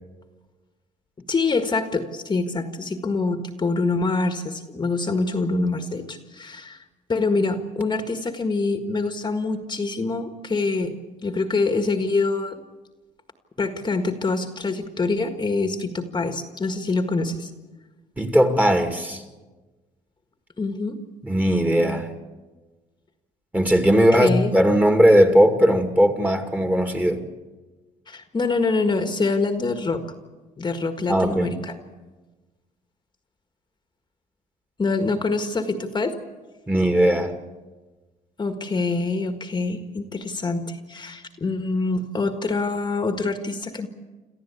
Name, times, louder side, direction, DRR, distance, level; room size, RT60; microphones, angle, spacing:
voice 1, 1.3-6.8 7.1-11.0 11.2-12.6 13.6-17.5 20.6-21.0 23.9-24.5 28.1-30.0 30.6-31.8 34.8-36.2 38.4-43.9, left 3 dB, 25° left, 1.7 m, -25 dB
voice 2, 18.2-19.2 21.2-22.1 23.5-27.2 31.1-31.5 36.7-37.3, equal, 10° right, 2.3 m, -18 dB
27.5 x 14.0 x 8.5 m
cardioid pair, 110°, 17 cm